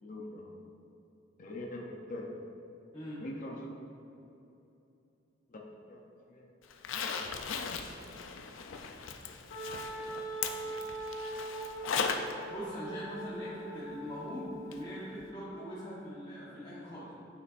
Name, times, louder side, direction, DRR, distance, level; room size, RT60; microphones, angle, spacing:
voice 1, 0.0-0.5 1.4-2.3 3.2-3.6 5.5-5.6 5.9-6.0 6.3-6.5 10.6-10.9, left 1 dB, 45° left, -1 dB, 0.6 m, -43 dB
Zipper (clothing), 6.7-12.3 12.7-12.8 14.7-14.8 15.2-15.3, left 5 dB, 90° left, 0.4 m, -37 dB
Wind instrument woodwind instrument, 9.5-15.1, right 1 dB, 70° left, 1.1 m, -41 dB
voice 2, 12.5-17.1, equal, 25° left, -11 dB, 1.2 m, -42 dB
9.6 x 5.6 x 2.5 m, 2.9 s
head